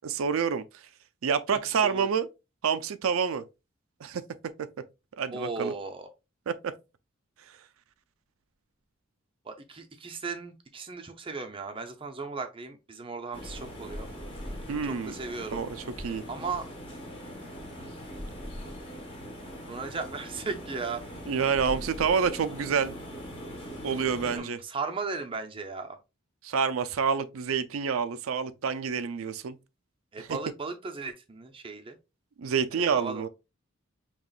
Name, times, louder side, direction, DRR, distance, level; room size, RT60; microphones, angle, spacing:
voice 1, 0.0-0.6 1.2-2.3 2.6-3.4 4.0-4.2 4.6-4.7 5.2-5.7 6.5-6.7 14.7-15.1 15.5-16.2 21.3-23.0 23.8-24.6 26.4-29.6 30.2-30.4 32.4-33.3, right 6 dB, 80° right, 0.4 m, -28 dB
voice 2, 5.3-6.1 9.4-14.1 14.8-15.7 16.3-16.7 19.7-21.0 24.2-26.0 30.1-32.0 32.7-33.2, right 4 dB, 25° right, 0.5 m, -36 dB
sound 1, 13.3-24.4, equal, 25° left, 1.1 m, -41 dB
5.3 x 3.0 x 2.3 m
head